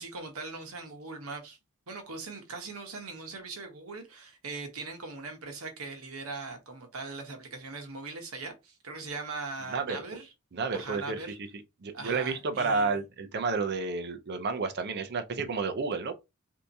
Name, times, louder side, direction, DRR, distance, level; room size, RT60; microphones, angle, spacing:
voice 1, 0.0-1.6 1.9-10.3 10.7-11.4 11.9-13.0, right 3 dB, 85° right, 1.0 m, -40 dB
voice 2, 9.7-10.0 10.5-11.5 11.8-16.1, right 4 dB, 50° right, 0.6 m, -31 dB
3.4 x 2.8 x 2.7 m
head